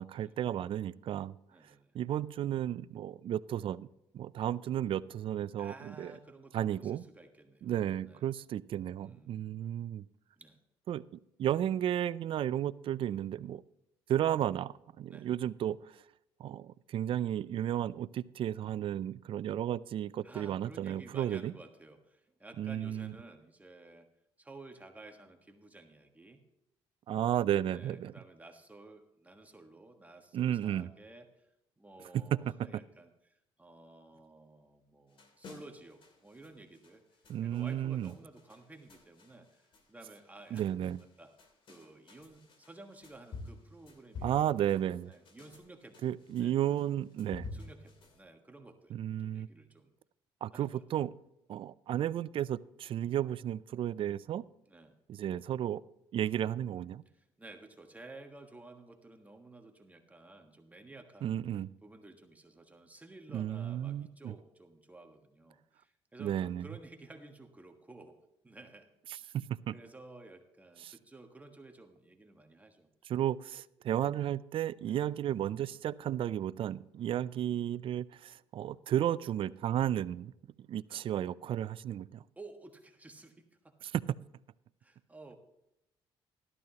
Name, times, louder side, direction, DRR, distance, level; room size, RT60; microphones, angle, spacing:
voice 1, 0.0-1.4 1.9-3.9 4.1-6.1 6.5-7.0 7.6-10.1 10.9-11.0 11.4-13.6 14.1-15.8 16.4-21.5 22.6-23.1 27.1-28.1 30.3-30.9 32.7-32.8 37.3-38.1 40.5-41.0 44.2-45.1 46.0-47.5 48.9-49.5 50.4-51.1 51.5-54.4 55.1-55.8 56.1-57.0 61.2-61.7 63.3-64.3 66.2-66.7 69.7-69.8 70.8-70.9 73.0-80.3 80.7-82.2 83.8-84.0, right 11 dB, 60° right, 17 dB, 0.4 m, -33 dB
voice 2, 1.5-2.0 5.6-8.3 9.0-9.4 10.4-10.6 15.1-15.3 20.2-24.1 24.4-26.4 27.6-31.3 31.8-37.0 37.4-39.6 39.9-40.6 41.2-41.3 41.7-46.1 46.4-46.5 47.5-49.0 49.2-49.9 50.5-50.8 54.6-55.0 57.1-61.4 61.8-68.2 68.4-68.9 69.2-69.4 69.7-72.9 74.9-75.0 77.0-77.2 80.9-81.0 82.4-83.7 84.8-85.4, right 2 dB, 15° right, 4 dB, 1.4 m, -53 dB
sound 1, 35.1-48.2, left 3 dB, 55° left, 2.5 m, -51 dB
13.5 x 12.5 x 2.9 m, 0.85 s
cardioid pair, 95°, 10 cm